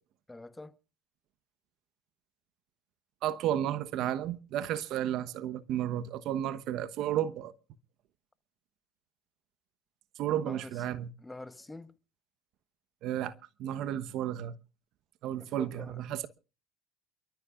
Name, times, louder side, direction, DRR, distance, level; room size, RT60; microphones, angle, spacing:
voice 1, 0.3-0.7 10.4-10.7 11.2-12.0 15.4-16.0, left 2 dB, 10° left, 1.0 m, -46 dB
voice 2, 3.2-7.5 10.2-11.1 13.0-13.3 13.6-14.5 15.2-16.3, right 11 dB, 60° right, 1.0 m, -32 dB
28.0 x 13.5 x 2.5 m
hypercardioid pair, 80°, 0 cm